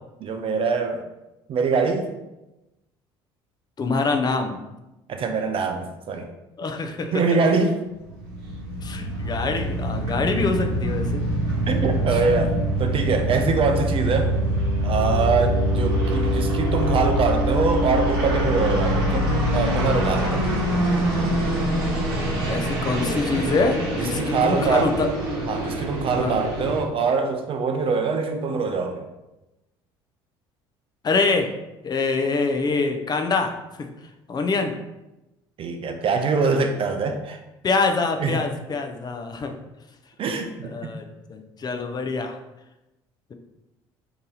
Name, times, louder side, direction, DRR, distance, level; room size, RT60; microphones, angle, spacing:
voice 1, 0.2-1.0 1.5-2.1 5.1-6.3 7.1-7.8 11.7-14.3 14.8-20.4 24.0-24.9 25.5-29.0 35.6-37.4 38.2-38.4 40.2-40.5 40.8-41.0, right 4 dB, 45° right, 5 dB, 0.5 m, -23 dB
voice 2, 3.8-4.6 6.6-7.2 8.8-11.2 12.9-13.1 22.5-25.1 26.2-26.4 31.0-31.6 31.8-33.9 34.3-34.7 37.6-39.5 40.6-42.4, left 4 dB, 35° left, 5 dB, 0.5 m, -25 dB
sound 1, 8.0-26.8, right 1 dB, 85° right, 0.9 m, -24 dB
2.8 x 2.7 x 3.8 m, 0.98 s
hypercardioid pair, 70°, 12 cm